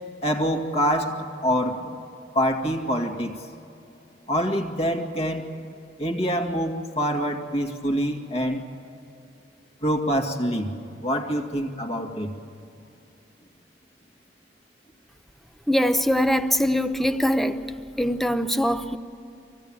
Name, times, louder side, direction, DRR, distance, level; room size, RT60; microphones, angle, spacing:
voice 1, 0.2-1.9 2.3-3.4 4.3-5.5 6.0-8.7 9.8-10.7 11.0-12.3, equal, 35° left, 2.1 m, -25 dB
voice 2, 15.7-17.6 18.0-19.0, equal, ahead, 0.8 m, -22 dB
26.0 x 16.5 x 8.8 m
head